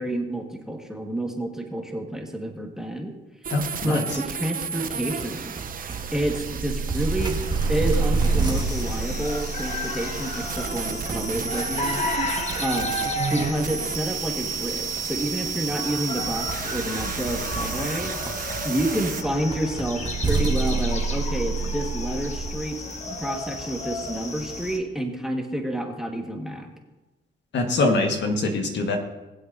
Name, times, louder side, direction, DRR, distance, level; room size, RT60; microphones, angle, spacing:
voice 1, 0.0-3.1 3.8-5.5 6.1-7.4 7.7-12.3 12.6-12.9 13.3-18.1 18.6-22.8 23.2-26.7, right 1 dB, ahead, 1 dB, 1.6 m, -29 dB
sound 1, 3.4-19.2, right 7 dB, 45° right, 0.7 m, -33 dB
voice 2, 3.5-4.0 27.5-29.0, left 2 dB, 65° left, 4 dB, 1.6 m, -23 dB
sound 2, 5.2-22.6, right 4 dB, 20° right, 1.6 m, -30 dB
sound 3, 8.4-24.8, left 2 dB, 35° left, 1.4 m, -33 dB
20.5 x 7.8 x 2.7 m, 1.1 s
cardioid pair, 90°, 20 cm